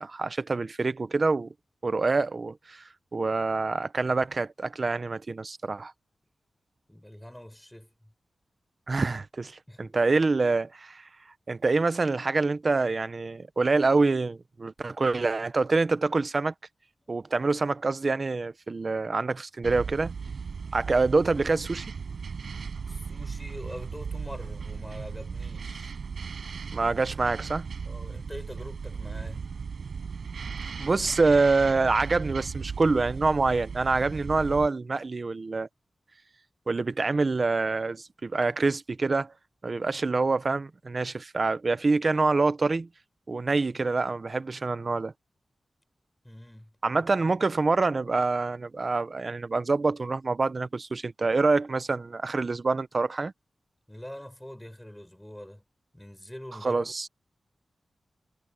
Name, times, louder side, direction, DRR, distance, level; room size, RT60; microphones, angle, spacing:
voice 1, 0.0-1.5 1.8-2.8 3.1-5.9 8.9-11.0 11.5-16.5 17.1-20.1 20.7-21.8 26.7-27.7 30.8-35.7 36.7-39.3 39.6-42.9 43.3-45.1 46.8-53.3 56.6-57.1, right 3 dB, 40° right, 0.9 m, -26 dB
voice 2, 6.9-7.9 9.7-9.9 22.9-26.0 27.8-29.5 46.2-46.8 53.9-55.6 55.9-57.1, left 1 dB, 5° left, 5.9 m, -44 dB
sound 1, 19.6-34.7, right 5 dB, 75° right, 5.1 m, -37 dB
wide cardioid pair, 145°, 0 cm